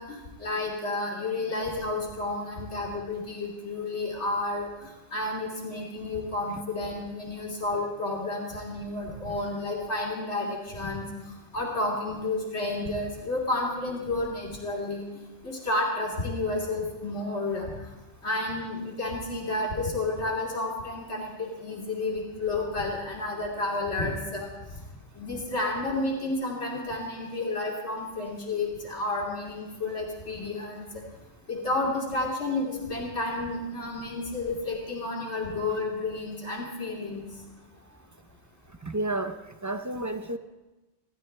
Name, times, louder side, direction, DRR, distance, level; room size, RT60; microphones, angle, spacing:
voice 1, 0.0-4.7 5.1-11.1 11.5-15.0 15.4-17.7 18.2-24.5 25.2-30.8 31.5-37.2, left 2 dB, 85° left, -3 dB, 3.1 m, -31 dB
voice 2, 38.8-40.4, right 2 dB, 20° right, 8 dB, 0.5 m, -31 dB
28.0 x 12.5 x 3.3 m, 1.1 s
omnidirectional pair, 1.1 m